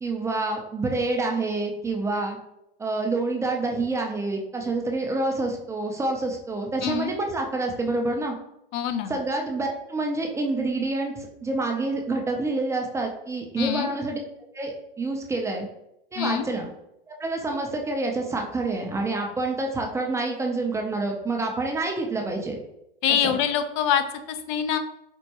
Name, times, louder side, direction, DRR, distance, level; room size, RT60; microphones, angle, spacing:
voice 1, 0.0-2.4 2.8-8.4 9.1-14.2 14.5-15.7 16.1-16.7 17.1-22.6 23.2-23.4, right 2 dB, 10° right, 1 dB, 0.4 m, -27 dB
voice 2, 6.8-7.1 8.7-9.1 13.6-13.9 16.2-16.5 23.0-24.8, left 9 dB, 55° left, 10 dB, 0.5 m, -25 dB
4.4 x 2.2 x 2.8 m, 0.81 s
hypercardioid pair, 115°, 30 cm